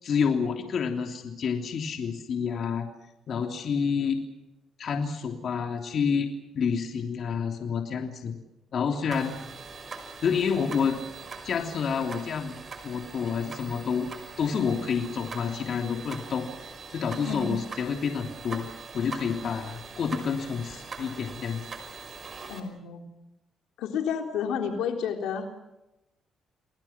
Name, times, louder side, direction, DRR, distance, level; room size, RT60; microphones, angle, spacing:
voice 1, 0.0-2.9 3.3-4.2 4.8-6.3 6.5-8.3 8.7-9.4 10.2-11.0 11.4-12.6 12.8-14.1 14.4-18.6 18.9-21.6, left 6 dB, 60° left, 3 dB, 3.1 m, -29 dB
sound 1, 9.1-22.6, right 4 dB, 40° right, 5.5 m, -42 dB
voice 2, 17.2-17.6 22.5-23.0 23.8-25.5, left 7 dB, 90° left, 3 dB, 3.7 m, -30 dB
30.0 x 20.5 x 6.1 m, 0.93 s
cardioid pair, 90°, 0 cm